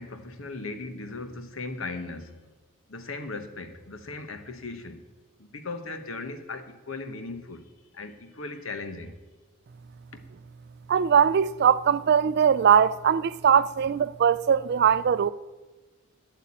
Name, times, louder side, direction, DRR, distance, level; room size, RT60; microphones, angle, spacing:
voice 1, 0.0-2.5 2.9-5.0 5.4-7.6 7.9-9.1 10.1-10.2, left 3 dB, 75° left, 1.2 m, -38 dB
voice 2, 10.9-15.3, right 7 dB, 50° right, 0.3 m, -21 dB
10.5 x 8.3 x 8.7 m
head